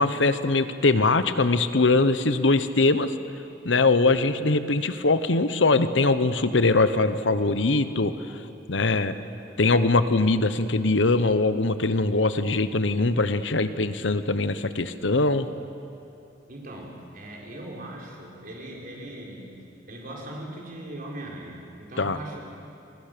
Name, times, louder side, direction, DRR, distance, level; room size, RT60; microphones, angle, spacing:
voice 1, 0.0-3.1 3.6-8.1 8.7-9.1 9.6-15.5 22.0-22.2, left 3 dB, 90° left, 12 dB, 1.0 m, -22 dB
voice 2, 16.5-19.6 19.9-22.4, right 1 dB, 50° right, -1 dB, 4.7 m, -39 dB
28.5 x 21.0 x 6.9 m, 2.8 s
head